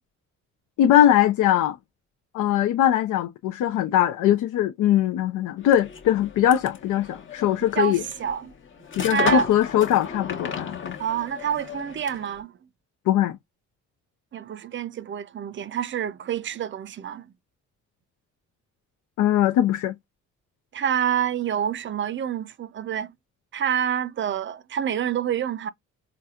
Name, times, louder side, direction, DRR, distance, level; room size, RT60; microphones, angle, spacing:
voice 1, 0.8-1.8 2.3-8.0 9.0-10.9 13.1-13.4 19.2-19.9, left 11 dB, 80° left, 0.6 m, -21 dB
sound 1, 5.6-12.4, left 5 dB, 40° left, 1.0 m, -35 dB
voice 2, 7.6-8.5 9.1-9.5 11.0-12.5 14.3-17.3 20.7-23.1 23.5-25.7, right 9 dB, 40° right, 0.5 m, -27 dB
4.1 x 2.2 x 2.3 m
cardioid pair, 90°, 30 cm